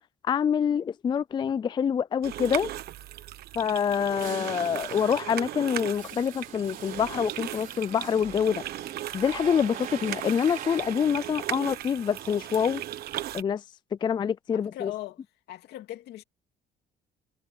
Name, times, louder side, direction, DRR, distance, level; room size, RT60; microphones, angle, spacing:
voice 1, 0.2-2.7 3.6-8.6 9.1-12.8 13.3-13.6 14.0-14.9, left 7 dB, 25° left, 0.3 m, -26 dB
sound 1, 2.2-13.4, right 13 dB, 70° right, 1.3 m, -37 dB
sound 2, 3.6-13.4, right 9 dB, 50° right, 4.3 m, -45 dB
voice 2, 4.2-4.8 14.5-15.2 15.5-16.2, left 14 dB, 75° left, 2.7 m, -40 dB
cardioid pair, 110°, 17 cm